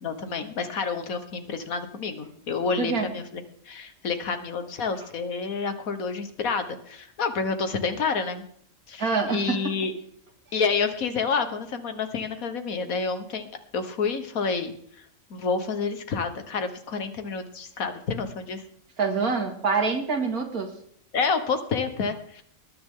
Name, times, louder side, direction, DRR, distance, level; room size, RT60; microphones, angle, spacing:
voice 1, 0.0-8.4 8.9-9.9 10.5-13.5 13.7-14.7 15.3-18.6 21.1-22.4, left 5 dB, 75° left, 9 dB, 1.8 m, -29 dB
voice 2, 2.8-3.1 9.0-9.6 19.0-20.7, right 4 dB, 85° right, 4 dB, 2.8 m, -25 dB
20.0 x 9.8 x 3.8 m, 0.62 s
omnidirectional pair, 1.5 m